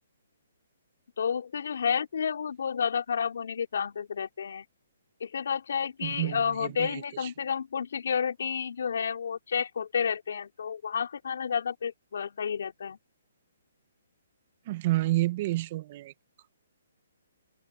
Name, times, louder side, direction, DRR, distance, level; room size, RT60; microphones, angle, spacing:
voice 1, 1.2-4.6 5.2-13.0, left 7 dB, 70° left, 4.7 m, -31 dB
voice 2, 6.0-7.3 14.7-16.1, right 17 dB, 40° right, 1.9 m, -30 dB
open air
hypercardioid pair, 150°, 0 cm